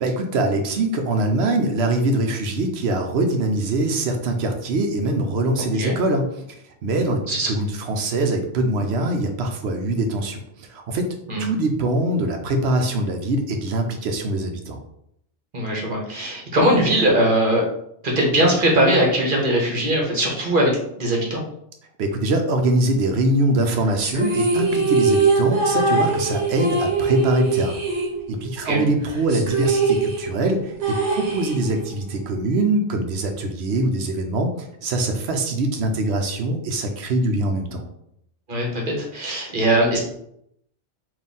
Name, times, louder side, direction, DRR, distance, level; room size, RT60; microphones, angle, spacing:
voice 1, 0.0-6.6 6.8-14.8 22.0-27.8 28.3-37.8, right 2 dB, 70° right, 4 dB, 0.9 m, -23 dB
voice 2, 15.5-17.6 18.0-21.4 28.6-28.8 38.5-40.0, right 1 dB, 50° right, -1 dB, 1.1 m, -20 dB
sound 1, 24.0-28.6 28.9-29.0 29.3-32.0, right 3 dB, 90° right, 1.1 m, -22 dB
3.6 x 2.6 x 4.1 m, 0.74 s
omnidirectional pair, 1.1 m